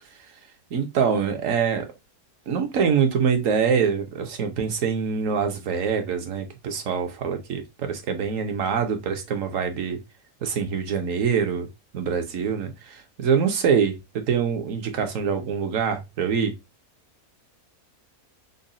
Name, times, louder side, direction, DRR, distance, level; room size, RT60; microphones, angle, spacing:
voice 1, 0.7-1.9 2.5-10.0 10.4-11.7 11.9-14.0 14.3-16.5, right 6 dB, 60° right, 1.1 m, -24 dB
4.0 x 2.2 x 3.7 m
omnidirectional pair, 1.7 m